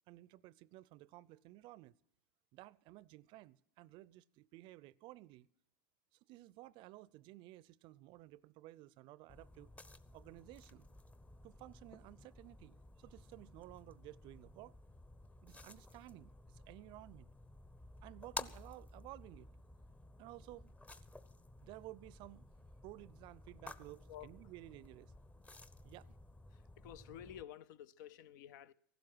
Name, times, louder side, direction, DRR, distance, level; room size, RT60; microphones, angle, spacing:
voice 1, 0.1-1.9 2.5-5.5 6.3-9.7 10.1-10.9 11.4-14.7 15.4-17.3 18.0-19.5 20.2-20.7 21.6-22.5 22.8-25.1 25.8-26.1, right 17 dB, 50° right, 0.5 m, -55 dB
sound 1, 9.3-27.4, left 2 dB, 15° left, 0.8 m, -54 dB
voice 2, 26.5-28.7, left 10 dB, 70° left, 0.7 m, -52 dB
15.5 x 12.0 x 6.2 m
hypercardioid pair, 105°, 10 cm